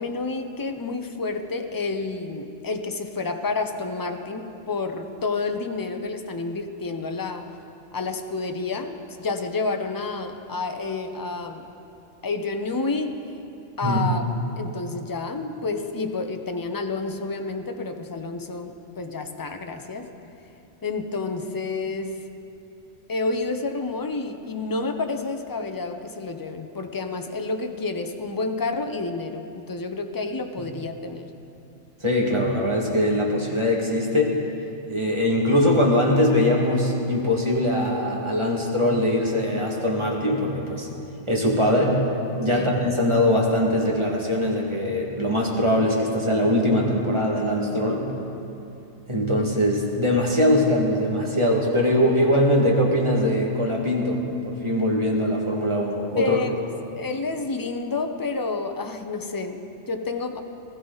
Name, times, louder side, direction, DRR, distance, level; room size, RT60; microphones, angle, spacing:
voice 1, 0.0-7.5 7.9-11.7 12.2-13.2 13.8-14.3 14.6-20.1 20.8-22.2 23.1-31.3 42.5-42.7 56.2-56.5 57.0-60.4, left 3 dB, 20° left, 6 dB, 0.7 m, -29 dB
voice 2, 13.8-14.1 30.6-30.7 32.0-34.4 34.9-40.9 41.3-42.0 42.4-48.1 49.1-56.4, left 1 dB, 25° right, -3 dB, 2.1 m, -22 dB
20.0 x 14.5 x 4.0 m, 2.8 s
omnidirectional pair, 1.2 m